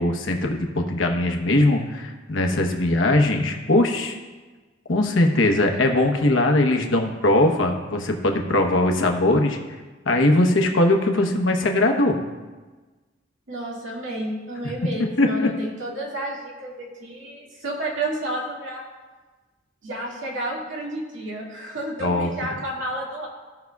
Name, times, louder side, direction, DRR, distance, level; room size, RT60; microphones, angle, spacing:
voice 1, 0.0-4.2 4.9-9.6 10.0-12.2 15.2-15.5 22.0-22.3, left 1 dB, 80° left, 3 dB, 1.0 m, -20 dB
voice 2, 13.5-18.8 19.8-23.3, right 1 dB, 80° right, -3 dB, 2.1 m, -31 dB
16.0 x 5.7 x 2.3 m, 1.3 s
head